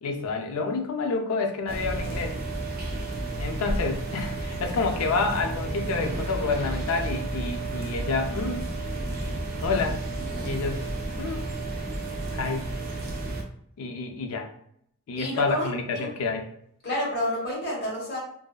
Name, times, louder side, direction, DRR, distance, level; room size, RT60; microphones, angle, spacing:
voice 1, 0.0-2.4 3.4-8.7 9.6-10.1 10.4-10.8 11.2-11.5 12.3-12.7 13.8-14.5 15.1-16.5, left 4 dB, 85° left, 5 dB, 0.4 m, -29 dB
sound 1, 1.7-13.4, right 2 dB, 45° right, 0.5 m, -31 dB
voice 2, 15.2-16.1 16.8-18.2, left 1 dB, 50° left, -5 dB, 1.2 m, -29 dB
2.6 x 2.2 x 2.3 m, 0.70 s
head